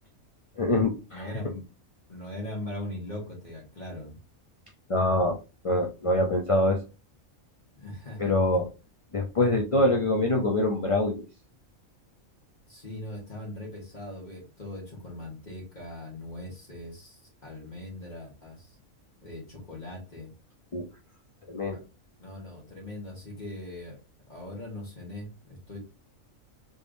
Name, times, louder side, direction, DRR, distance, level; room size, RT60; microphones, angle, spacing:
voice 1, 0.6-1.3 4.9-5.4 5.6-6.8 8.2-8.7 9.1-11.2 20.7-20.9 21.5-21.8, left 1 dB, 55° left, 0 dB, 0.3 m, -24 dB
voice 2, 1.1-1.6 2.1-4.2 7.7-8.2 12.7-18.8 19.2-20.3 21.7-21.8 22.2-24.0 24.3-25.8, left 1 dB, 35° left, -1 dB, 1.6 m, -40 dB
3.5 x 3.4 x 2.5 m, 0.29 s
omnidirectional pair, 1.4 m